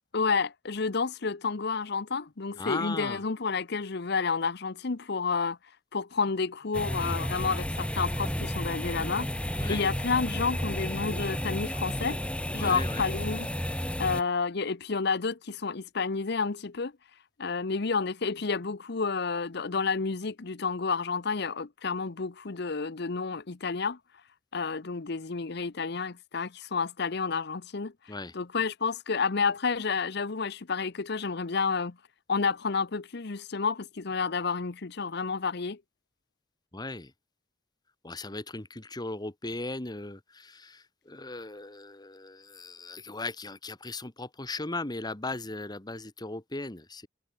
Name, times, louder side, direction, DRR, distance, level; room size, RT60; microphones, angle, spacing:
voice 1, 0.1-5.6 5.9-12.2 12.5-13.5 14.0-16.9 17.4-24.0 24.5-27.9 28.3-31.9 32.3-35.8, left 4 dB, 65° left, 0.9 m, -30 dB
voice 2, 2.5-3.2 9.6-9.8 12.5-13.1 28.1-28.3 36.7-37.1 38.0-47.1, left 2 dB, 25° left, 1.6 m, -37 dB
sound 1, 6.7-14.2, equal, 5° left, 5.4 m, -32 dB
head